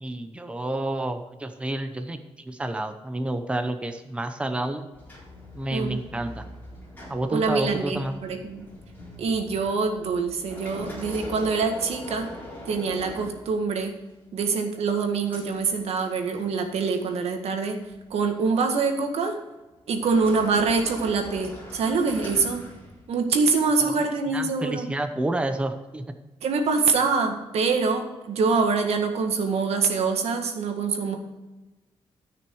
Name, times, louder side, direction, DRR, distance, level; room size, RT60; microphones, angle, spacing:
voice 1, 0.0-4.9 5.5-6.4 7.1-8.1 23.8-23.9 24.3-26.0, right 1 dB, 10° right, 7 dB, 0.8 m, -29 dB
sound 1, 4.9-13.9 14.4-16.5 16.8-17.1 17.8-18.7 19.9-23.3, left 1 dB, 20° left, 4.0 m, -42 dB
voice 2, 7.3-8.7 9.2-12.3 12.7-13.9 14.3-17.8 18.1-19.4 19.9-22.6 23.1-24.9 26.4-31.2, right 4 dB, 80° right, 4 dB, 1.7 m, -25 dB
14.0 x 6.2 x 4.7 m, 1.1 s
cardioid pair, 125°, 10 cm